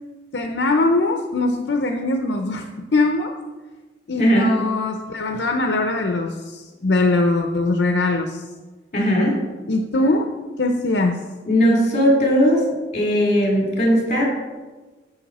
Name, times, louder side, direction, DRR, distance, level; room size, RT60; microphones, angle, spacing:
voice 1, 0.3-3.3 4.1-8.4 9.7-10.3 10.6-11.2, left 2 dB, 70° left, 4 dB, 0.7 m, -21 dB
voice 2, 4.2-4.5 8.9-9.4 11.5-12.6 12.9-14.2, equal, 40° left, -2 dB, 3.4 m, -17 dB
11.0 x 7.7 x 4.2 m, 1.3 s
head